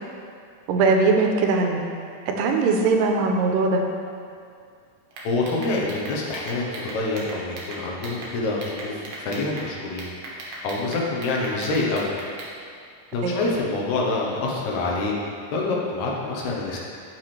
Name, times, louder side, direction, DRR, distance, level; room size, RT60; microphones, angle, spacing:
voice 1, 0.7-1.8 2.3-3.8 13.2-13.4, right 3 dB, 90° right, 2 dB, 2.3 m, -20 dB
sound 1, 5.1-8.3 8.6-9.7 10.0-12.5, right 2 dB, 60° right, 1.8 m, -38 dB
voice 2, 5.2-10.1 10.6-12.1 13.1-15.1 15.5-16.8, left 2 dB, 70° left, -2 dB, 2.1 m, -26 dB
8.2 x 5.8 x 3.2 m, 2.3 s
omnidirectional pair, 3.9 m